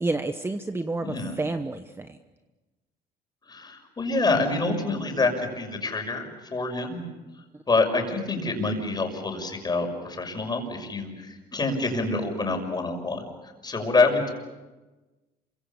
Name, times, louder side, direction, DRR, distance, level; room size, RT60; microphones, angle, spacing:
voice 1, 0.0-2.2, right 2 dB, 15° right, 8 dB, 1.1 m, -30 dB
voice 2, 1.0-1.3 3.5-7.0 7.7-13.2 13.6-14.3, left 3 dB, 25° left, 4 dB, 6.2 m, -26 dB
27.5 x 25.0 x 7.1 m, 1.2 s
cardioid pair, 110°, 17 cm